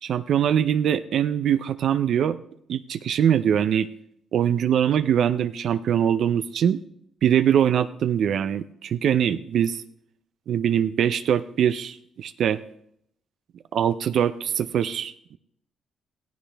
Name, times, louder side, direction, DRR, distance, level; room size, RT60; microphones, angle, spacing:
voice 1, 0.0-2.4 2.7-3.9 4.3-6.8 7.2-9.8 10.5-12.6 13.7-15.4, right 9 dB, 65° right, 11 dB, 0.5 m, -22 dB
16.0 x 15.5 x 3.4 m, 0.73 s
cardioid pair, 90°, 0 cm